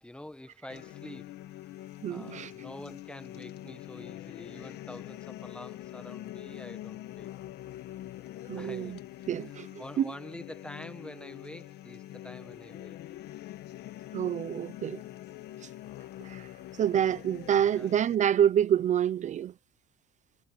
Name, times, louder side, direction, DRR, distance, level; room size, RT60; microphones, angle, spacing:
voice 1, 0.0-1.8 2.1-7.3 8.6-9.0 9.8-13.0 17.7-17.9, left 1 dB, 5° left, 1.4 m, -46 dB
sound 1, 0.7-18.1, left 14 dB, 75° left, 1.2 m, -44 dB
voice 2, 2.0-2.5 8.5-9.0 9.3-9.7 10.0-10.1 14.1-15.0 15.6-15.7 16.2-16.5 16.8-19.5, right 10 dB, 45° right, 0.5 m, -27 dB
cardioid pair, 110°, 17 cm